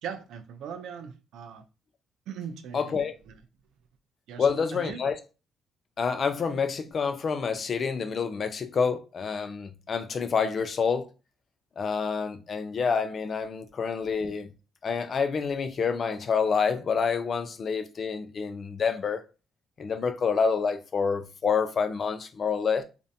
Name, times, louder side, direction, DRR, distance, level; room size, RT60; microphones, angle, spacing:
voice 1, 0.0-1.6 2.3-3.4 4.3-5.0, right 7 dB, 85° right, 0.4 m, -40 dB
voice 2, 2.7-3.1 4.4-5.2 6.0-11.1 11.8-14.5 14.8-19.2 19.8-22.8, left 5 dB, 50° left, 0.4 m, -28 dB
2.5 x 2.1 x 2.6 m
cardioid pair, 90°, 0 cm